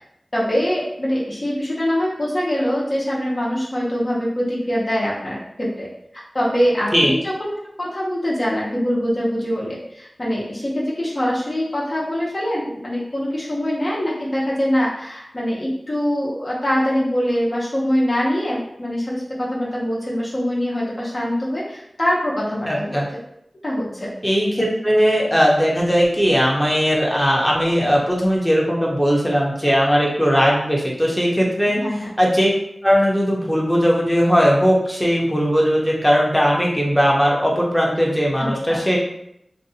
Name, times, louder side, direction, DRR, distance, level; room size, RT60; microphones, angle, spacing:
voice 1, 0.3-23.0 23.6-24.1 31.7-32.1 38.4-38.8, equal, 45° left, -6 dB, 0.7 m, -23 dB
voice 2, 22.7-23.1 24.2-31.8 32.2-32.5 32.8-39.0, equal, 5° left, -3 dB, 0.7 m, -18 dB
2.6 x 2.2 x 2.7 m, 0.76 s
wide cardioid pair, 50°, 0 cm